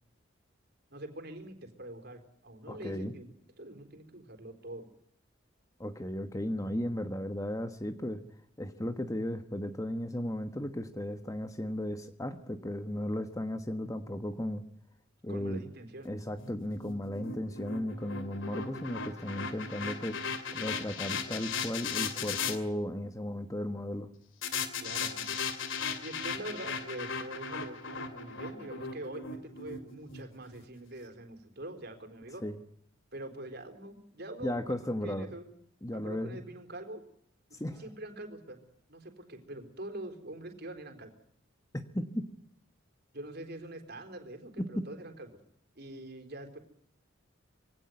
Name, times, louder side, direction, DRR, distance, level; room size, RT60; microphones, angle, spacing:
voice 1, 0.9-3.2 3.6-4.9 15.3-16.2 24.8-25.3 26.0-32.4 33.1-34.8 35.0-35.4 35.9-37.0 37.5-38.6 38.9-41.1 43.1-45.3 45.8-46.6, right 1 dB, 50° right, 7 dB, 4.2 m, -44 dB
voice 2, 2.7-3.1 5.8-8.2 8.6-14.6 15.2-15.6 16.0-20.2 20.5-24.1 32.4-32.5 34.4-35.3 35.8-36.4 37.6-37.8 41.7-42.3 44.6-44.9, left 1 dB, 15° left, 8 dB, 1.3 m, -35 dB
sound 1, 16.4-22.6 24.4-30.6, left 5 dB, 65° left, 2.7 m, -37 dB
23.5 x 17.5 x 9.5 m, 0.70 s
head